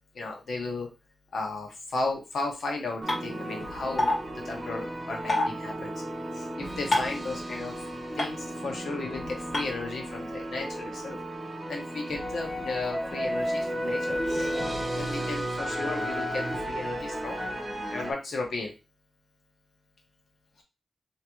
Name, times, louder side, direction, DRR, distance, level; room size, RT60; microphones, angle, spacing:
voice 1, 0.1-0.9 1.3-4.1 4.4-5.9 6.4-7.7 8.2-11.2 11.7-14.5 15.0-17.4 17.9-18.7, left 3 dB, 85° left, 1 dB, 1.0 m, -34 dB
sound 1, 3.0-18.1, equal, 20° right, 1.1 m, -33 dB
Meinl Clave, 3.1-3.2 4.0-4.1 5.3-5.5 6.9-7.2 8.2-8.3 9.5-9.6, left 2 dB, 50° left, 2.1 m, -23 dB
3.4 x 2.9 x 3.0 m, 0.27 s
wide cardioid pair, 85°, 0 cm